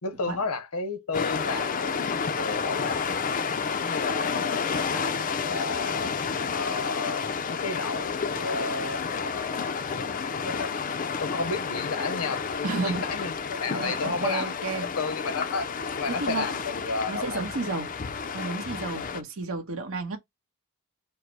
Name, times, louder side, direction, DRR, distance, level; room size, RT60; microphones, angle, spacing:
voice 1, 0.0-3.0 3.8-6.1 6.5-10.0 10.4-10.7 11.2-17.4, left 4 dB, 80° left, 0.8 m, -33 dB
sound 1, 1.1-19.2, left 5 dB, 35° left, 0.4 m, -30 dB
voice 2, 12.6-13.1 13.7-14.9 16.1-16.5 17.1-17.9 18.3-20.2, right 3 dB, 70° right, 1.1 m, -31 dB
4.5 x 2.1 x 4.6 m
head